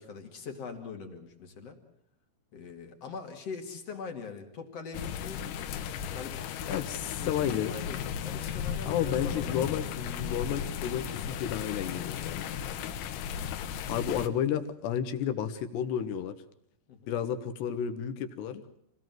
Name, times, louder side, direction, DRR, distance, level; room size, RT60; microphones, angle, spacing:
voice 1, 0.0-1.8 2.5-5.4 6.0-9.7 16.9-17.1, left 5 dB, 45° left, 4 dB, 2.1 m, -42 dB
sound 1, 4.9-14.3, left 8 dB, 85° left, 4.1 m, -35 dB
voice 2, 7.3-7.7 8.9-12.5 13.9-16.3 17.1-18.6, left 9 dB, 65° left, 9 dB, 3.1 m, -31 dB
27.5 x 19.0 x 7.8 m, 0.70 s
omnidirectional pair, 5.9 m